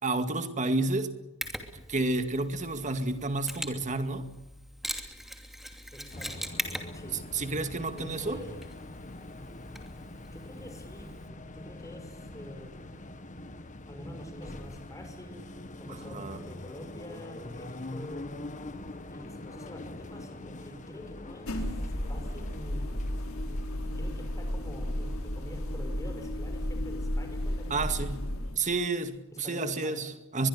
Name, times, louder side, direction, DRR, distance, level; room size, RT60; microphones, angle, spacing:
voice 1, 0.0-1.1 1.7-4.3 7.3-8.4 15.9-16.5 27.7-28.2 28.5-30.5, right 3 dB, 35° right, 2.1 m, -30 dB
Mechanisms, 1.4-11.3, equal, ahead, 2.8 m, -42 dB
voice 2, 5.9-6.5 6.9-7.2 7.9-8.6 10.3-12.9 13.9-15.4 15.8-18.3 19.1-23.0 23.4-23.6 23.8-28.0 29.3-30.0, equal, 15° left, 5.6 m, -46 dB
sound 1, 6.1-25.8, left 2 dB, 35° left, 1.7 m, -44 dB
sound 2, 21.5-28.6, left 1 dB, 85° left, 3.9 m, -33 dB
23.5 x 22.0 x 6.8 m
head